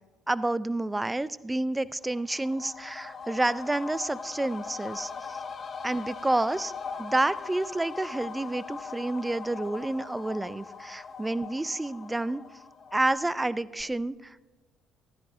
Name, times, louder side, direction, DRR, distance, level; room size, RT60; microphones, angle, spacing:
voice 1, 0.3-5.4 5.8-6.7 7.0-12.4 12.9-14.4, right 2 dB, 15° right, 18 dB, 0.4 m, -29 dB
sound 1, 2.0-13.5 13.8-13.9, left 5 dB, 40° left, 0.8 m, -40 dB
14.5 x 12.5 x 3.6 m, 1.2 s
figure-of-eight pair, 50°, 0 cm